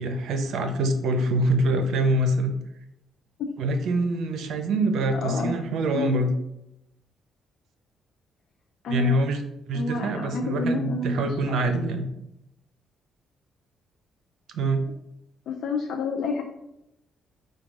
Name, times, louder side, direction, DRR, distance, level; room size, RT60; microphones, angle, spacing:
voice 1, 0.0-2.5 3.6-6.3 8.9-12.1 14.5-14.8, right 1 dB, 75° right, 7 dB, 0.6 m, -25 dB
voice 2, 5.2-5.5 5.9-6.2 8.8-9.2 9.7-11.8 15.5-16.4, left 3 dB, 70° left, 1 dB, 0.5 m, -29 dB
4.7 x 2.3 x 4.6 m, 0.85 s
cardioid pair, 90°, 0 cm